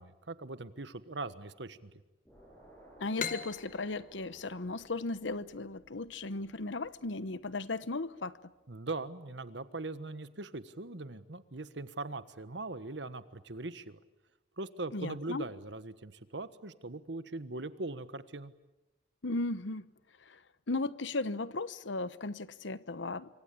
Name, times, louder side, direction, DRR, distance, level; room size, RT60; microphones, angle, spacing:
voice 1, 0.0-1.9 8.7-14.0 14.6-18.5, right 2 dB, 70° right, 1.5 m, -41 dB
sound 1, 2.3-7.5, right 1 dB, 10° left, 7.1 m, -59 dB
voice 2, 3.0-8.5 14.9-15.4 19.2-19.9 20.3-20.4 20.7-23.3, left 3 dB, 85° left, 1.0 m, -36 dB
sound 2, 3.2-6.6, left 6 dB, 45° left, 1.4 m, -43 dB
26.0 x 25.0 x 8.5 m
head